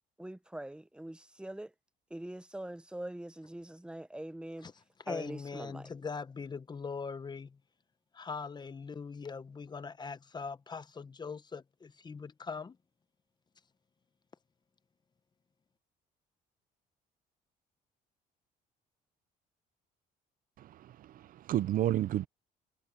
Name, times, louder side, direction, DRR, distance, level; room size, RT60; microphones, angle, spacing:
voice 1, 0.2-1.7 2.1-4.7 5.1-5.9, right 1 dB, 5° right, 0.8 m, -43 dB
voice 2, 5.0-7.6 8.1-12.8, left 5 dB, 25° left, 1.0 m, -41 dB
voice 3, 20.6-22.3, right 13 dB, 55° right, 0.5 m, -32 dB
cardioid pair, 110°, 17 cm